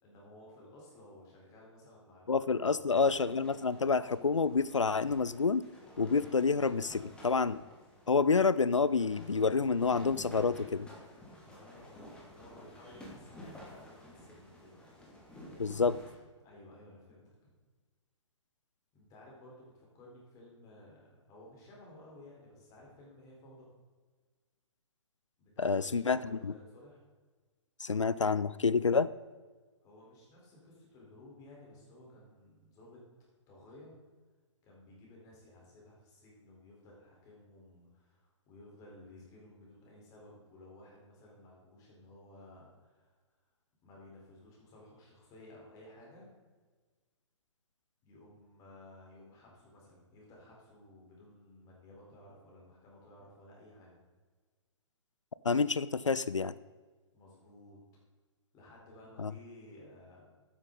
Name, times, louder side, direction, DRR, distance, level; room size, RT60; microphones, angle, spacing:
voice 1, 0.0-3.1 11.4-14.7 16.4-17.5 18.9-23.7 25.4-27.0 29.8-33.0 33.5-33.9 34.6-43.1 43.8-46.3 48.0-54.0 57.1-57.8 58.5-60.3, left 1 dB, 20° left, -3 dB, 4.1 m, -55 dB
voice 2, 2.3-5.6 6.0-7.6 8.1-10.9 15.6-16.0 25.6-26.5 27.8-29.1 55.4-56.5 59.2-59.3, left 4 dB, 80° left, 17 dB, 0.4 m, -28 dB
sound 1, 2.9-16.2, left 1 dB, 5° left, 2.5 m, -53 dB
12.5 x 10.0 x 4.0 m, 1.4 s
figure-of-eight pair, 120°, 16 cm